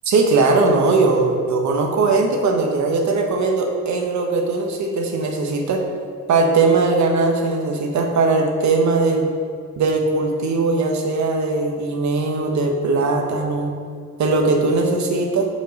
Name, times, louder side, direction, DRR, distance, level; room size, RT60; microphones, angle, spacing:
voice 1, 0.0-5.8 6.3-9.3 9.8-13.7 14.2-15.5, right 3 dB, 70° right, 2 dB, 1.2 m, -19 dB
5.4 x 4.5 x 6.3 m, 2.2 s
cardioid pair, 90°, 30 cm